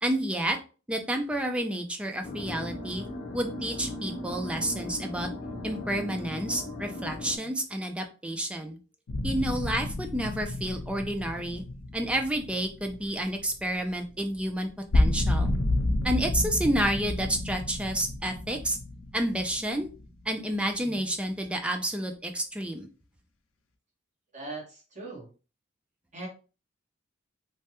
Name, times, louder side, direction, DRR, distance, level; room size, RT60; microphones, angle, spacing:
voice 1, 0.0-0.6 0.9-3.1 3.3-5.3 5.6-8.8 9.2-11.6 11.9-15.5 16.0-18.8 19.1-19.9 20.3-22.9, right 1 dB, 5° right, 4 dB, 0.4 m, -30 dB
sound 1, 2.2-7.4, left 2 dB, 40° left, 0.7 m, -37 dB
sound 2, 9.1-13.9 14.3-14.4 14.7-20.2, left 1 dB, 90° left, 0.5 m, -30 dB
voice 2, 24.3-25.3 26.1-26.3, right 2 dB, 40° right, -2 dB, 1.2 m, -39 dB
3.2 x 2.2 x 2.9 m, 0.34 s
head